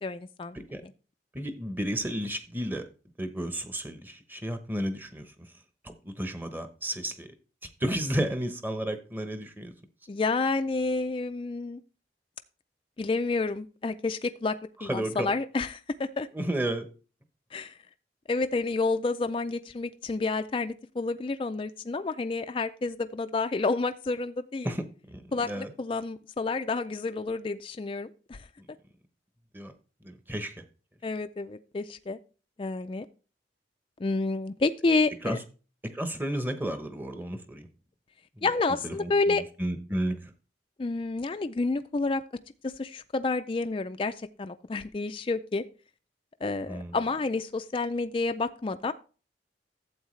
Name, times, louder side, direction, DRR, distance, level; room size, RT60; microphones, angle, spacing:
voice 1, 0.0-0.9 10.1-11.8 13.0-16.3 17.5-17.8 18.3-24.7 25.3-28.5 31.0-32.2 32.6-33.1 34.0-35.4 38.4-39.4 40.8-42.2 42.6-45.6 46.4-48.9, left 3 dB, 30° left, 9 dB, 0.4 m, -29 dB
voice 2, 1.3-2.8 3.2-5.2 5.8-7.3 7.8-9.7 14.8-15.3 16.3-16.9 24.6-25.7 29.5-29.7 30.0-30.5 35.2-35.4 35.9-37.7 38.4-38.5 38.8-40.3 46.7-47.0, right 1 dB, 10° right, 8 dB, 0.9 m, -32 dB
12.0 x 8.1 x 3.2 m, 0.37 s
head